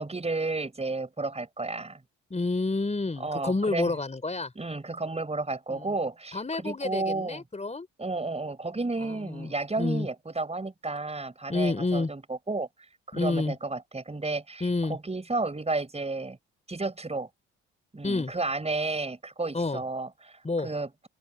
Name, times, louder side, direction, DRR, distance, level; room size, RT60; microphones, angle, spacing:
voice 1, 0.0-2.0 3.2-3.9 4.6-7.4 8.0-12.7 13.1-16.4 16.7-17.3 17.9-21.1, right 3 dB, 20° right, 4.7 m, -32 dB
voice 2, 2.3-4.5 5.7-5.9 6.3-7.9 9.0-10.1 11.5-12.1 13.1-13.6 14.6-15.0 18.0-18.3 19.5-19.8 20.4-20.7, left 3 dB, 20° left, 4.4 m, -29 dB
open air
hypercardioid pair, 55°, 32 cm